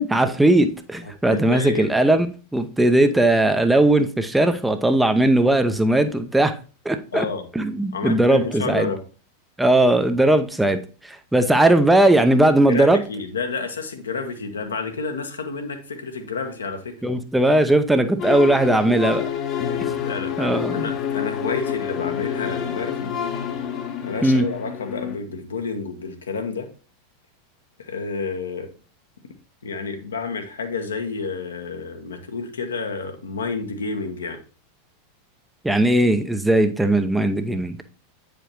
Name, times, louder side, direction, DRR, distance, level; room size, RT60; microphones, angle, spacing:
voice 1, 0.0-2.3 2.5-6.6 6.8-7.2 7.6-8.9 9.6-10.8 11.3-13.0 17.0-19.3 20.4-20.8 24.2-24.4 35.6-37.8, right 1 dB, 5° right, 8 dB, 0.7 m, -18 dB
voice 2, 1.0-1.9 7.1-7.5 7.9-9.0 12.7-16.9 20.0-23.1 24.0-26.7 27.8-28.7 29.6-34.4, left 4 dB, 75° left, 5 dB, 1.2 m, -30 dB
sound 1, 18.2-25.2, left 8 dB, 35° left, 1.0 m, -28 dB
8.7 x 5.0 x 3.0 m, 0.36 s
figure-of-eight pair, 90°, 0 cm